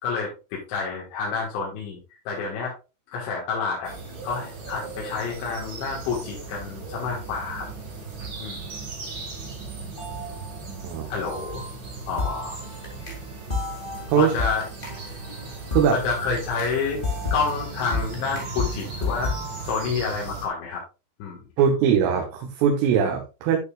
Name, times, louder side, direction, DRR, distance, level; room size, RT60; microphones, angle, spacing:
voice 1, 0.0-2.0 2.3-2.7 3.1-3.9 4.2-7.7 8.4-8.6 11.1-11.6 12.1-12.6 14.2-14.6 15.9-17.0 17.3-19.3 19.7-20.8 21.2-21.4, left 5 dB, 75° left, -3 dB, 3.9 m, -28 dB
sound 1, 3.8-20.5, right 4 dB, 45° right, 1.7 m, -37 dB
sound 2, 10.0-11.0 11.2-19.7, left 3 dB, 40° left, 0.7 m, -32 dB
voice 2, 21.6-23.6, right 7 dB, 90° right, 2 dB, 3.7 m, -21 dB
10.5 x 6.8 x 2.4 m, 0.29 s
omnidirectional pair, 5.6 m